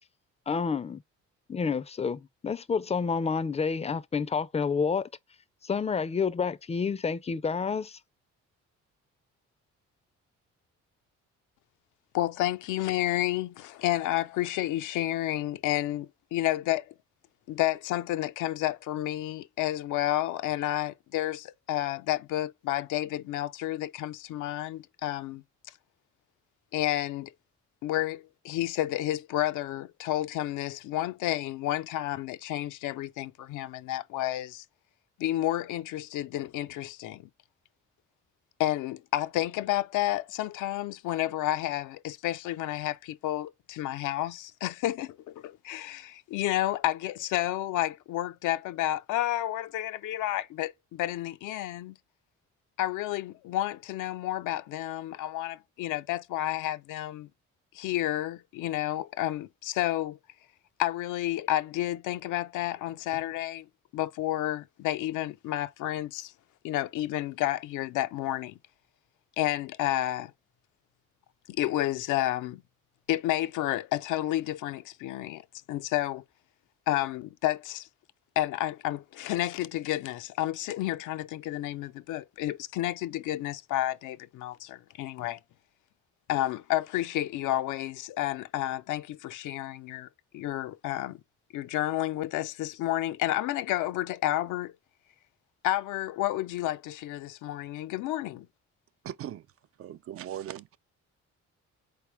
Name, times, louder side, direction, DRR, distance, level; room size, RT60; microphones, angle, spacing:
voice 1, 0.5-1.0 1.5-5.0 5.6-8.0, left 5 dB, 20° left, 0.4 m, -29 dB
voice 2, 12.1-16.9 17.5-25.4 26.7-27.3 27.8-34.6 35.2-37.3 38.6-51.9 52.8-57.3 57.7-60.2 60.8-63.7 63.9-66.3 66.6-68.6 69.4-70.3 71.5-72.6 73.1-76.2 76.9-77.9 78.4-85.4 86.3-90.1 90.3-91.2 91.5-94.7 95.6-98.5, left 14 dB, 90° left, 0.5 m, -30 dB
voice 3, 99.0-99.5 99.8-100.8, right 11 dB, 50° right, 0.4 m, -39 dB
4.1 x 3.5 x 3.0 m
cardioid pair, 90°, 30 cm